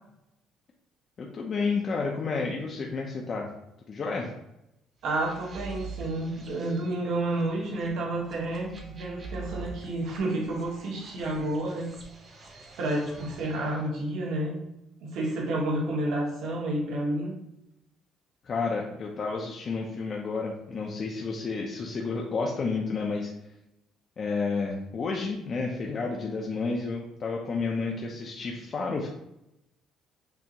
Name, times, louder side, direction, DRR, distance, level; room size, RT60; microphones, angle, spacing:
voice 1, 1.2-3.5 3.9-4.3 18.4-23.3 24.2-29.1, left 4 dB, 30° left, 0 dB, 0.5 m, -31 dB
sound 1, 5.0-13.8, right 3 dB, 30° right, 0.8 m, -45 dB
voice 2, 5.0-11.9 12.8-14.6 15.0-17.4, right 1 dB, 65° right, -2 dB, 1.0 m, -30 dB
6.7 x 2.4 x 2.9 m, 0.84 s
cardioid pair, 165°, 0 cm